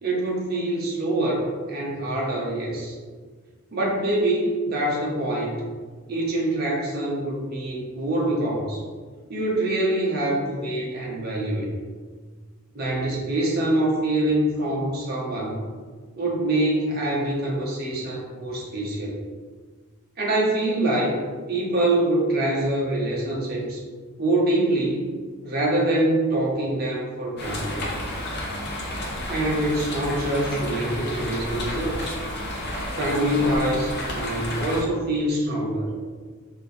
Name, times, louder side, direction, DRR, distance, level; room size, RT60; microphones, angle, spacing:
voice 1, 0.0-2.9 3.7-5.6 6.1-8.8 9.3-11.7 12.7-15.6 16.2-19.2 20.2-21.2 21.5-23.8 24.2-25.1 25.4-27.8 29.3-32.1 33.0-35.9, right 1 dB, 45° right, -4 dB, 1.0 m, -25 dB
sound 1, 27.4-34.8, left 1 dB, 45° left, 0.8 m, -31 dB
4.6 x 2.9 x 3.3 m, 1.5 s
head